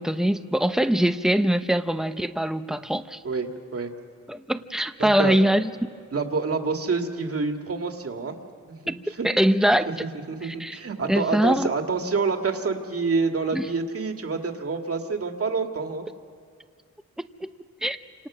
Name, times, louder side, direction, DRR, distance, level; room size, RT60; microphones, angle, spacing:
voice 1, 0.0-3.2 4.3-5.7 8.9-9.9 10.4-10.8 11.1-11.7 13.5-13.7 17.2-17.5 17.8-18.0, right 1 dB, ahead, 10 dB, 0.8 m, -23 dB
voice 2, 3.2-3.9 5.0-5.4 6.1-8.4 8.7-9.3 10.3-16.1, right 4 dB, 50° right, 4 dB, 2.2 m, -27 dB
29.5 x 26.5 x 6.3 m, 2.1 s
wide cardioid pair, 110°, 29 cm